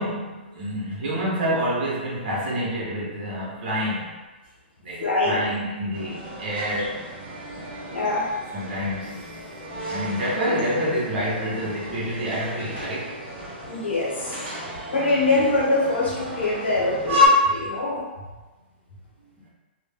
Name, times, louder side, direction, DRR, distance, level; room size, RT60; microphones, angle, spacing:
voice 1, 0.0-4.2 4.8-7.0 8.5-9.2 9.9-13.1, equal, 55° right, -5 dB, 1.1 m, -27 dB
voice 2, 5.0-5.5 7.9-8.3 13.6-14.3 14.9-18.0, left 2 dB, 80° left, -4 dB, 1.1 m, -23 dB
sound 1, 5.9-17.3, left 2 dB, 30° right, 1.1 m, -31 dB
2.6 x 2.1 x 3.4 m, 1.2 s
hypercardioid pair, 130°, 6 cm